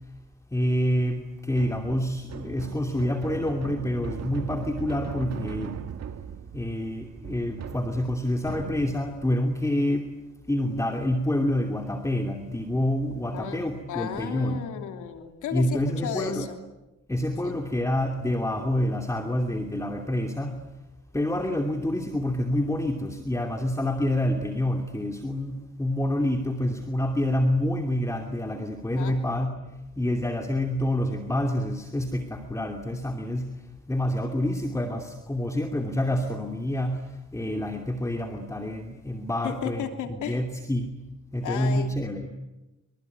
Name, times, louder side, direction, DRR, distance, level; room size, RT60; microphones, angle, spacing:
voice 1, 0.5-5.7 6.5-10.1 10.5-14.6 15.5-16.4 17.1-20.6 21.1-40.9 41.3-42.3, left 1 dB, 10° left, 4 dB, 2.7 m, -27 dB
sound 1, 1.5-9.3, right 8 dB, 60° right, 1.7 m, -39 dB
voice 2, 13.3-13.6 13.9-16.6 17.4-17.6 28.9-29.2 39.4-40.4 41.4-41.9, left 8 dB, 80° left, 5 dB, 3.1 m, -34 dB
25.5 x 24.5 x 9.6 m, 1.0 s
cardioid pair, 90°, 30 cm